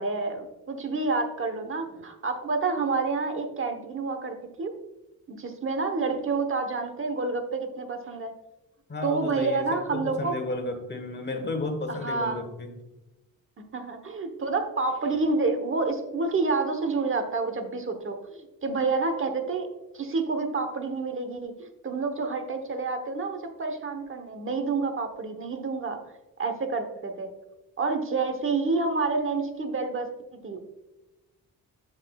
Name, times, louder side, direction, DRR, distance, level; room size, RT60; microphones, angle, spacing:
voice 1, 0.0-4.7 5.3-8.3 9.0-10.3 11.9-12.4 13.7-19.7 19.9-26.0 26.4-27.3 27.8-30.6, right 3 dB, 35° right, 6 dB, 1.0 m, -29 dB
voice 2, 8.9-12.7, left 2 dB, 30° left, 5 dB, 1.3 m, -33 dB
12.0 x 5.6 x 2.3 m, 1.0 s
wide cardioid pair, 150°, 36 cm